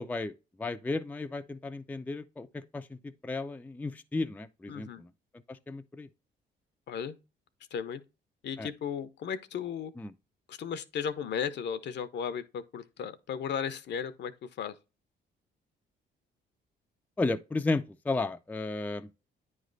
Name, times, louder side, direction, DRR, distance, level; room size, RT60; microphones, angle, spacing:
voice 1, 0.0-5.1 5.5-6.1 8.6-8.7 10.0-10.1 17.2-19.1, left 3 dB, 10° left, 0.4 m, -34 dB
voice 2, 4.7-5.0 6.9-7.2 7.7-8.0 8.4-9.9 10.5-14.7, left 7 dB, 60° left, 0.7 m, -35 dB
9.4 x 3.2 x 3.9 m
cardioid pair, 90°, 20 cm